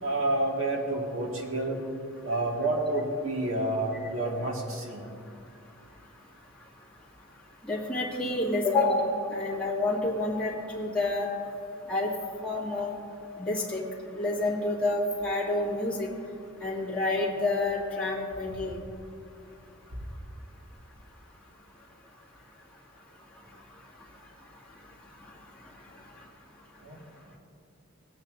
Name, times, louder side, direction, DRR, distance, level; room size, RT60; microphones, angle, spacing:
voice 1, 0.0-1.8 2.2-5.0 26.8-27.0, right 2 dB, 80° right, -1 dB, 1.9 m, -29 dB
voice 2, 7.6-11.3 11.9-12.1 12.4-12.9 13.4-13.8 14.2-16.1 16.6-18.8, left 2 dB, 5° left, -8 dB, 2.1 m, -28 dB
18.0 x 9.3 x 2.6 m, 2.5 s
head